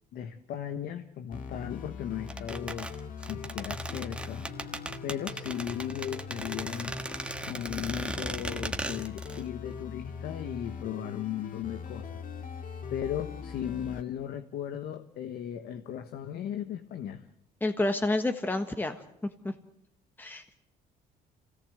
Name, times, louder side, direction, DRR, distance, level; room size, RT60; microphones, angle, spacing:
voice 1, 0.1-2.9 3.3-7.2 7.5-12.2 12.9-17.3, left 10 dB, 70° left, 9 dB, 1.3 m, -37 dB
sound 1, 1.3-14.0, left 5 dB, 55° left, 2.2 m, -41 dB
sound 2, 2.3-9.4 9.7-9.8, right 2 dB, 5° right, 1.4 m, -37 dB
voice 2, 17.6-19.0 19.4-19.5 20.2-20.6, left 2 dB, 10° left, 7 dB, 1.4 m, -29 dB
27.0 x 17.5 x 8.0 m, 0.80 s
cardioid pair, 110°, 17 cm